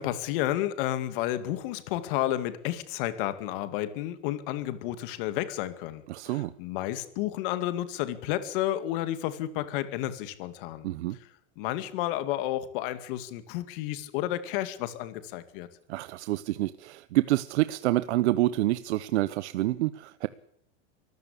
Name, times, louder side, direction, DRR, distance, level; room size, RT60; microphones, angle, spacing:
voice 1, 0.0-10.9 11.6-15.7, left 13 dB, 50° left, 12 dB, 2.3 m, -31 dB
voice 2, 6.1-6.5 10.8-11.2 15.9-20.3, right 16 dB, 75° right, 15 dB, 1.0 m, -27 dB
24.0 x 15.0 x 8.5 m, 0.66 s
supercardioid pair, 170°, 35 cm